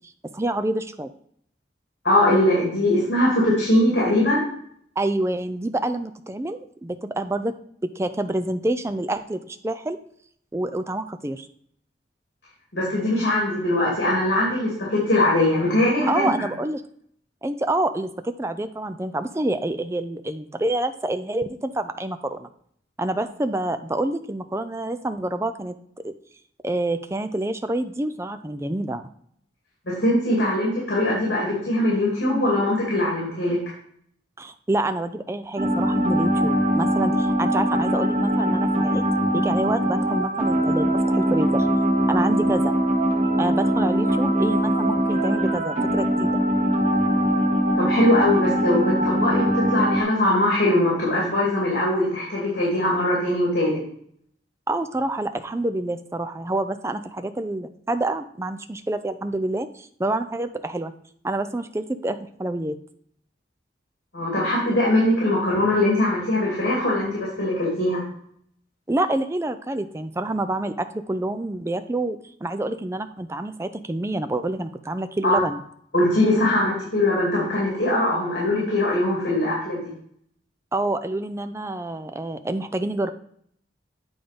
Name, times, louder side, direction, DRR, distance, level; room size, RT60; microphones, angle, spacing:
voice 1, 0.3-1.1 5.0-7.5 7.8-10.0 10.5-11.5 16.1-16.8 17.4-22.5 23.0-25.7 26.0-26.1 26.6-29.0 34.4-39.0 39.3-41.8 42.1-42.8 43.4-46.4 54.7-60.9 61.2-62.8 68.9-75.6 80.7-83.1, right 1 dB, 15° right, 9 dB, 0.4 m, -27 dB
voice 2, 2.0-4.4 12.7-16.3 29.9-33.6 47.7-53.8 64.1-68.0 75.2-75.4 75.9-79.9, left 1 dB, 65° left, -6 dB, 2.7 m, -21 dB
sound 1, 35.6-50.0, equal, 40° right, 1.2 m, -22 dB
8.9 x 3.8 x 5.2 m, 0.65 s
head